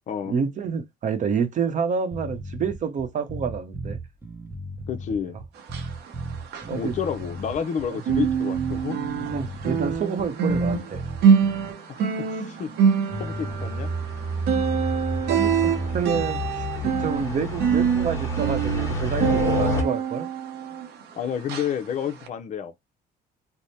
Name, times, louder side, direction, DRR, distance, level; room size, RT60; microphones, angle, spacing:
voice 1, 0.3-4.0 6.7-6.9 7.9-8.0 9.3-11.0 15.3-20.3, right 6 dB, 45° right, 0.8 m, -28 dB
sound 1, 2.1-11.7, right 1 dB, 15° right, 0.7 m, -36 dB
voice 2, 4.9-5.4 6.7-9.0 11.9-12.7 13.2-13.9 21.2-22.8, left 8 dB, 45° left, 0.6 m, -30 dB
sound 2, 5.6-7.7 8.0-21.1 21.5-21.7 22.2-22.3, right 7 dB, 75° right, 0.7 m, -25 dB
sound 3, 13.1-19.8, equal, 15° left, 1.3 m, -29 dB
3.4 x 2.1 x 4.1 m
cardioid pair, 110°, 17 cm